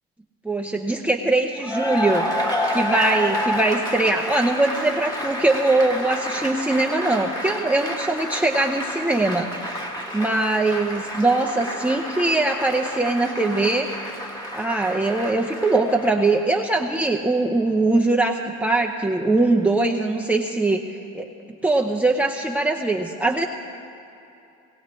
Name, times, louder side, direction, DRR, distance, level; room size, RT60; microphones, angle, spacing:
voice 1, 0.4-2.4 2.7-9.7 10.1-13.9 14.5-20.8 21.1-21.3 21.6-23.5, right 2 dB, 5° right, 3 dB, 0.7 m, -21 dB
Cheering / Applause, 1.6-16.5, equal, 10° left, 1.7 m, -29 dB
19.0 x 17.5 x 3.2 m, 2.8 s
supercardioid pair, 90°, 31 cm